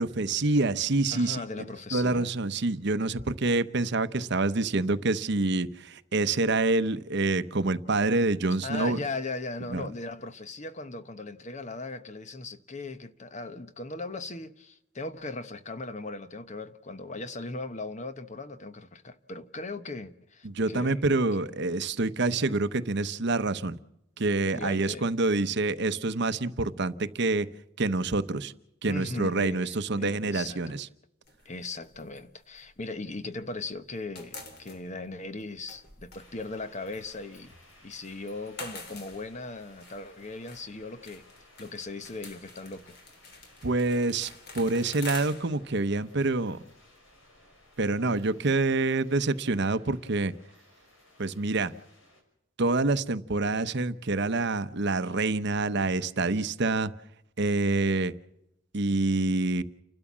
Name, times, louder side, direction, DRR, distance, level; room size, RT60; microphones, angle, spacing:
voice 1, 0.0-1.6 1.9-9.0 9.7-9.8 20.4-23.8 24.2-27.5 27.8-28.5 28.8-30.9 43.6-46.6 47.8-50.3 51.2-51.7 52.6-56.9 57.4-58.1 58.7-59.6, right 3 dB, 60° right, 0.9 m, -27 dB
voice 2, 1.1-2.3 8.6-21.0 24.5-25.1 28.8-30.8 31.4-37.5 37.8-41.2 41.6-43.0, left 3 dB, 35° left, 1.0 m, -38 dB
sound 1, 31.3-33.5 33.8-49.2, left 3 dB, 55° left, 2.9 m, -48 dB
sound 2, 36.1-52.2, left 1 dB, 85° left, 5.9 m, -59 dB
30.0 x 12.5 x 7.3 m
head